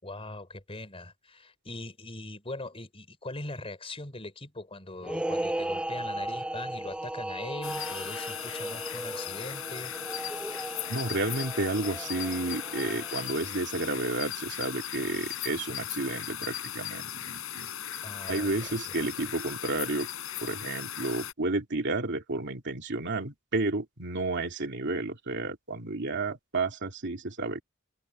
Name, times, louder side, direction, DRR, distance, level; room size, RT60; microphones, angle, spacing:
voice 1, 0.0-10.0 18.0-18.8, left 2 dB, 30° left, 4.2 m, -41 dB
sound 1, 5.0-13.6, right 1 dB, 5° right, 0.4 m, -36 dB
sound 2, 7.6-21.3, left 11 dB, 75° left, 5.5 m, -37 dB
voice 2, 10.9-17.7 18.3-20.1 20.4-27.6, right 2 dB, 60° right, 2.7 m, -31 dB
head